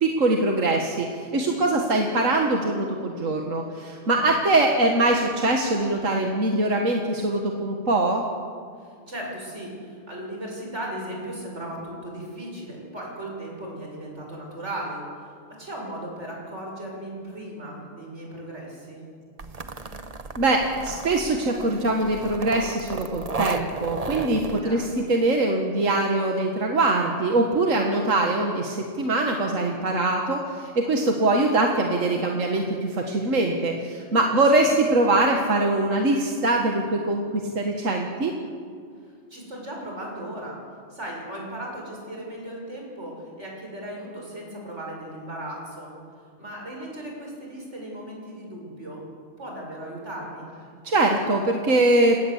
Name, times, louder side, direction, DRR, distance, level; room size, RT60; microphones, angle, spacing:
voice 1, 0.0-8.2 20.4-38.3 50.8-52.2, right 2 dB, 80° right, 2 dB, 2.1 m, -23 dB
voice 2, 4.0-4.5 8.8-15.3 15.6-19.0 24.6-24.9 34.1-34.4 39.0-40.6 40.9-45.9 46.4-49.0 49.4-50.4, right 1 dB, 60° right, -1 dB, 7.3 m, -37 dB
sound 1, 19.4-24.6, right 3 dB, 30° right, 1.1 m, -34 dB
28.5 x 18.5 x 8.2 m, 2.2 s
omnidirectional pair, 1.3 m